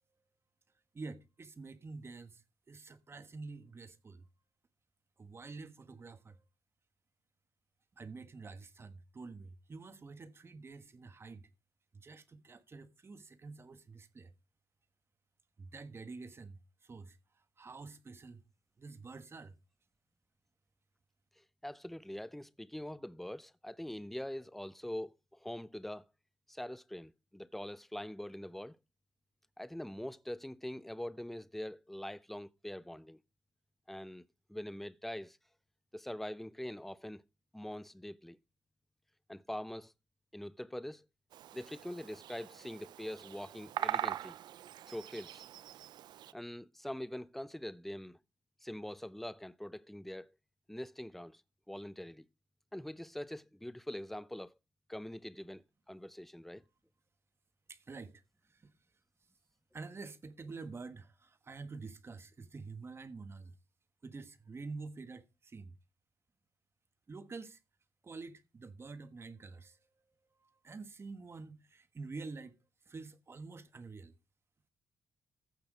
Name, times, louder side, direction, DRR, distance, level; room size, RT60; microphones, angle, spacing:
voice 1, 0.9-2.4 2.7-4.3 5.2-6.4 8.0-11.5 11.9-14.3 15.6-17.2 17.6-18.4 18.8-19.6 57.7-58.2 58.5-58.7 59.7-63.5 64.0-65.8 67.1-67.6 68.0-69.8 70.4-72.6 72.9-74.1, right 4 dB, 35° right, 1.4 m, -48 dB
voice 2, 21.4-26.1 26.5-28.8 29.6-33.2 33.9-35.4 35.9-37.2 37.5-38.4 39.3-39.9 40.3-41.1 41.5-44.4 44.9-45.4 46.3-48.2 48.6-50.3 50.7-51.4 51.7-52.3 52.7-54.6 54.9-56.6, left 1 dB, 5° left, 0.6 m, -43 dB
Bird vocalization bird call bird song, 41.3-46.3, right 12 dB, 75° right, 0.5 m, -42 dB
15.0 x 6.2 x 5.0 m
cardioid pair, 80°, 7 cm